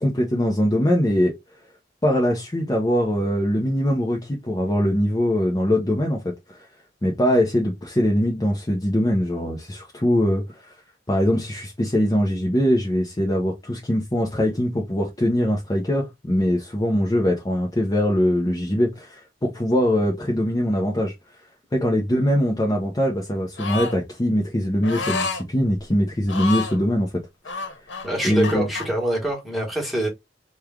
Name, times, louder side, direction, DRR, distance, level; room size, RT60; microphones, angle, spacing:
voice 1, 0.0-1.3 2.0-6.7 7.0-10.8 11.1-21.1 21.7-27.1 27.5-27.7 28.2-28.7, equal, 20° left, 0.6 m, -22 dB
sound 1, 23.6-24.0 24.8-25.4 26.2-26.8 27.4-28.9, left 4 dB, 80° left, 0.9 m, -29 dB
voice 2, 28.0-30.1, right 1 dB, ahead, 1.3 m, -25 dB
3.2 x 2.3 x 3.4 m
head